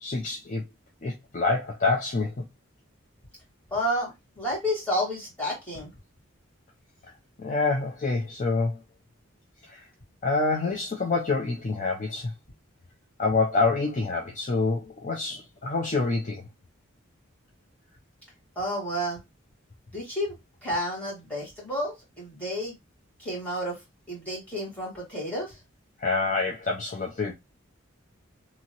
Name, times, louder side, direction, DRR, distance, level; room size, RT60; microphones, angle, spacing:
voice 1, 0.0-0.6 1.0-2.3 7.4-8.8 9.7-9.8 10.2-12.3 13.2-16.4 26.0-27.3, left 3 dB, 35° left, 0.4 m, -27 dB
voice 2, 3.7-5.9 18.6-19.2 19.9-20.4 20.6-22.7 23.2-23.8 24.1-25.6, equal, 5° left, 1.8 m, -30 dB
2.8 x 2.8 x 2.9 m
head